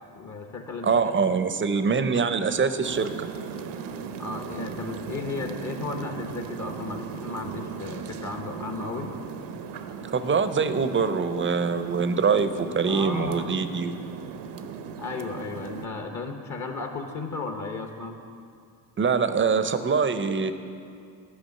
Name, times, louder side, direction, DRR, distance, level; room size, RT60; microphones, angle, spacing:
voice 1, 0.1-1.4 4.2-9.1 12.9-13.5 15.0-18.2, left 3 dB, 40° left, 4 dB, 1.0 m, -35 dB
voice 2, 0.8-3.3 10.0-14.0 19.0-20.5, right 5 dB, 25° right, 11 dB, 0.6 m, -24 dB
sound 1, 2.8-15.9, right 6 dB, 65° right, 0.7 m, -38 dB
10.5 x 5.0 x 6.6 m, 2.4 s
supercardioid pair, 55°, 45 cm